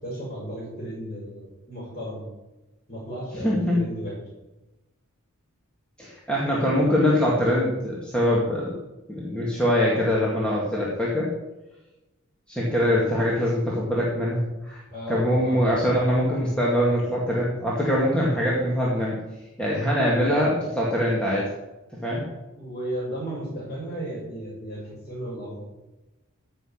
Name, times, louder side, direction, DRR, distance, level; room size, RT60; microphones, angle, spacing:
voice 1, 0.0-2.3 2.9-4.1 12.7-13.0 14.9-15.7 22.6-25.7, right 1 dB, 35° left, -9 dB, 5.3 m, -34 dB
voice 2, 3.4-3.8 6.0-8.8 9.1-11.3 12.5-14.8 15.1-19.2 19.6-21.5 22.0-22.2, equal, 5° left, -6 dB, 2.1 m, -23 dB
15.0 x 5.9 x 6.6 m, 1.0 s
head